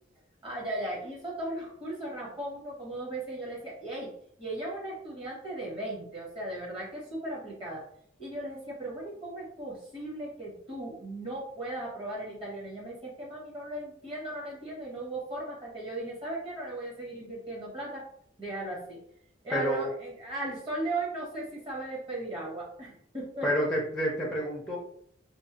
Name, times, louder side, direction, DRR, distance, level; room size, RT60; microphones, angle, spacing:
voice 1, 0.4-4.1 4.4-7.8 8.2-18.1 18.4-19.0 19.4-23.7, right 1 dB, 30° right, -4 dB, 0.9 m, -37 dB
voice 2, 19.5-19.9 23.4-24.8, equal, ahead, -3 dB, 0.5 m, -29 dB
3.0 x 2.0 x 2.8 m, 0.63 s
head